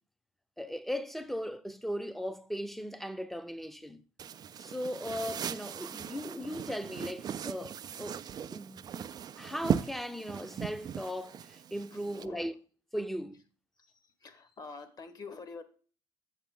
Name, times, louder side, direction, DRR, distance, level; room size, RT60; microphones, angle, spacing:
voice 1, 0.6-4.0 4.6-8.2 8.5-9.1 9.4-12.5 12.9-13.4, equal, ahead, 0.7 m, -38 dB
sound 1, 4.2-12.3, right 8 dB, 45° right, 0.4 m, -38 dB
voice 2, 11.9-12.5 13.8-15.6, left 4 dB, 40° left, 1.4 m, -47 dB
7.2 x 6.4 x 3.7 m
cardioid pair, 90°, 10 cm